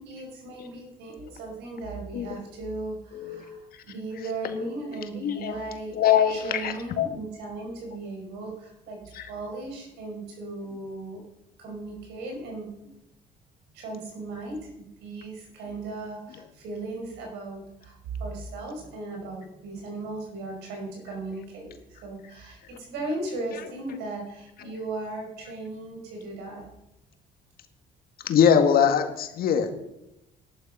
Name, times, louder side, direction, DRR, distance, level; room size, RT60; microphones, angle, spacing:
voice 1, 0.0-6.0 6.3-11.2 11.6-12.8 13.7-21.7 22.0-26.7, right 2 dB, 85° right, 2 dB, 5.2 m, -37 dB
voice 2, 3.1-3.4 4.4-4.7 5.2-5.5 6.0-7.1 9.2-9.3 28.3-29.7, left 8 dB, 60° left, 7 dB, 1.9 m, -22 dB
12.0 x 11.5 x 5.6 m, 0.88 s
cardioid pair, 110°, 17 cm